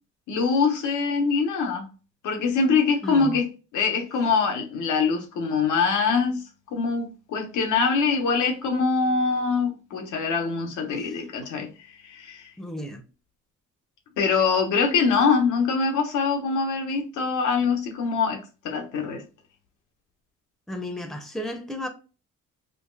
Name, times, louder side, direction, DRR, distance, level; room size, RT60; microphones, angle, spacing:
voice 1, 0.3-1.9 2.2-3.5 3.7-6.4 6.7-11.7 12.0-12.4 14.2-18.4 18.6-19.2, left 5 dB, 80° left, 1.1 m, -23 dB
voice 2, 3.0-3.4 11.0-11.1 12.6-13.0 20.7-21.9, left 1 dB, ahead, 0.7 m, -33 dB
5.0 x 2.4 x 2.3 m
cardioid pair, 90°, 30 cm